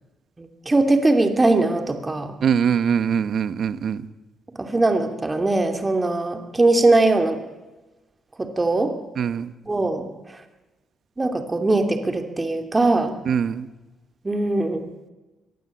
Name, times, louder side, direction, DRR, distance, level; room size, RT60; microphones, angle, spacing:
voice 1, 0.4-2.3 4.6-7.4 8.4-8.9 9.6-10.1 11.2-13.2 14.2-14.8, right 2 dB, 20° right, 6 dB, 2.7 m, -21 dB
voice 2, 2.4-4.0 9.2-9.5 13.3-13.7, right 7 dB, 60° right, 14 dB, 1.2 m, -22 dB
23.5 x 19.5 x 8.6 m, 1.1 s
cardioid pair, 90°, 0 cm